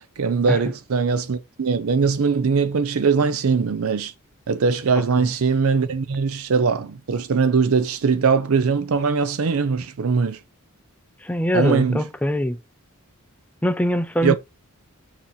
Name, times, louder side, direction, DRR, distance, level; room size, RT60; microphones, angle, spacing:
voice 1, 0.2-4.1 4.5-10.4 11.5-12.0 14.2-14.4, right 5 dB, 70° right, 0.5 m, -21 dB
voice 2, 11.2-12.6 13.6-14.4, equal, 5° left, 0.4 m, -22 dB
6.3 x 2.8 x 5.5 m
head